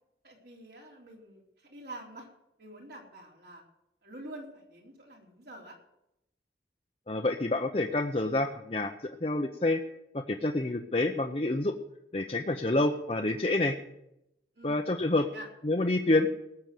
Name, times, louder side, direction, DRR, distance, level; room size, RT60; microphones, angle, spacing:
voice 1, 0.2-2.3 2.6-3.6 4.0-5.7 14.6-15.5, right 1 dB, 65° right, -1 dB, 3.9 m, -47 dB
voice 2, 7.1-8.9 9.2-9.8 10.1-11.7 12.1-13.8 14.6-15.3 15.6-16.5, left 2 dB, 35° left, 3 dB, 0.7 m, -28 dB
19.0 x 7.0 x 7.8 m, 0.84 s
head